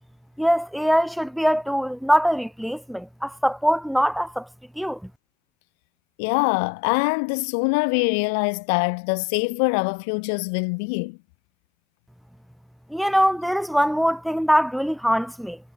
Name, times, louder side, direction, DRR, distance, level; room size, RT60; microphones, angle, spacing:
voice 1, 0.4-4.5 4.8-5.0 12.9-15.6, equal, ahead, 1.8 m, -22 dB
voice 2, 6.2-11.2, left 34 dB, 70° left, 3.7 m, -24 dB
hypercardioid pair, 80°, 0 cm